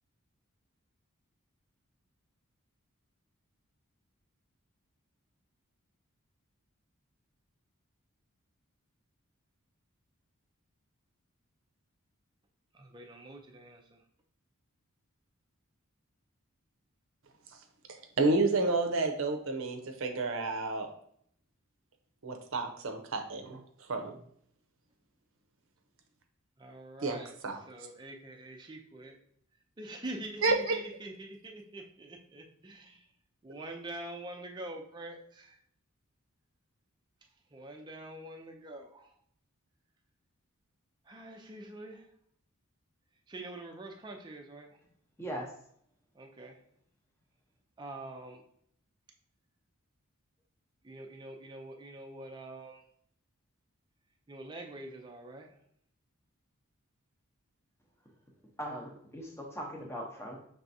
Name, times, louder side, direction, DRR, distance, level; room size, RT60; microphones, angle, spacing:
voice 1, 12.7-14.0 26.6-27.3 27.7-29.2 29.8-33.0 33.4-35.5 37.5-39.1 41.1-42.0 43.3-44.7 46.2-46.6 47.8-48.4 50.8-52.8 54.3-55.5, right 1 dB, 20° right, 2 dB, 0.5 m, -45 dB
voice 2, 17.9-20.9 22.2-24.1 27.0-27.2 27.4-27.6 30.4-30.8, right 3 dB, 65° right, 5 dB, 0.6 m, -30 dB
voice 3, 45.2-45.5 58.6-60.4, equal, 10° left, 0 dB, 0.8 m, -39 dB
5.9 x 3.3 x 2.7 m, 0.67 s
head